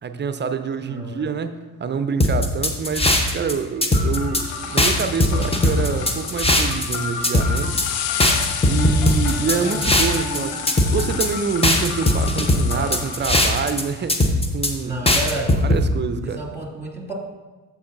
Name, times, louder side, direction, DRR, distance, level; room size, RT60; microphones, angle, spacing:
voice 1, 0.0-1.5 1.8-7.8 8.7-10.6 10.9-14.2 14.5-15.2 15.6-16.4, right 5 dB, 25° right, 10 dB, 0.5 m, -26 dB
voice 2, 0.8-1.3 9.4-10.0 14.8-15.5 16.2-17.1, right 2 dB, 5° right, -3 dB, 2.3 m, -31 dB
sound 1, 2.2-3.5 3.8-4.4 4.8-7.0 7.2-7.9 8.2-10.4 10.7-11.3 11.6-13.8 14.1-14.7 15.1-15.8, left 1 dB, 15° left, 0.9 m, -19 dB
sound 2, 3.9-13.2, left 2 dB, 80° left, 1.2 m, -33 dB
sound 3, 4.5-14.3, left 10 dB, 55° left, 0.6 m, -33 dB
14.0 x 4.7 x 2.6 m, 1.2 s
hypercardioid pair, 50°, 45 cm